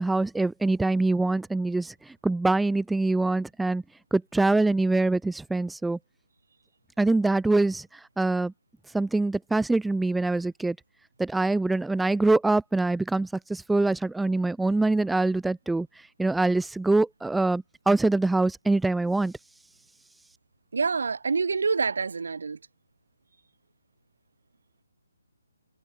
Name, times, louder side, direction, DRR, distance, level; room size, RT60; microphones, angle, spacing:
voice 1, 0.0-1.9 2.2-3.8 4.1-6.0 7.0-7.9 8.2-8.5 8.9-10.8 11.2-15.9 16.2-19.3, right 2 dB, 5° right, 0.3 m, -24 dB
voice 2, 20.7-22.6, right 5 dB, 65° right, 0.5 m, -26 dB
figure-of-eight pair, 140°, 0 cm